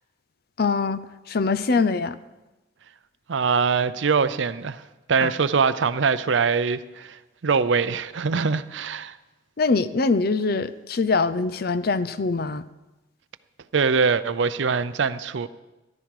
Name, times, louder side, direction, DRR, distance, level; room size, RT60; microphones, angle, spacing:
voice 1, 0.6-2.1 5.2-5.3 9.6-12.6, left 4 dB, 50° left, 0.5 m, -23 dB
voice 2, 3.3-4.8 5.1-9.2 13.7-15.5, right 5 dB, 75° right, 0.5 m, -23 dB
14.0 x 12.0 x 4.8 m
head